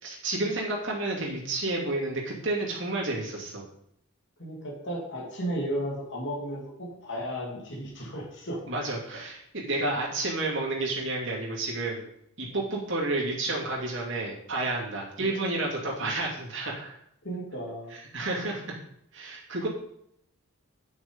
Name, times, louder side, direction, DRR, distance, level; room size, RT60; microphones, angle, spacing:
voice 1, 0.0-3.6 8.7-12.0 12.4-17.0 17.9-18.8 19.1-19.7, right 2 dB, 55° right, -3 dB, 2.7 m, -30 dB
voice 2, 4.4-8.6 15.2-15.4 16.0-16.1 17.2-17.9, equal, 55° left, -3 dB, 2.8 m, -34 dB
9.2 x 6.2 x 5.3 m, 0.74 s
head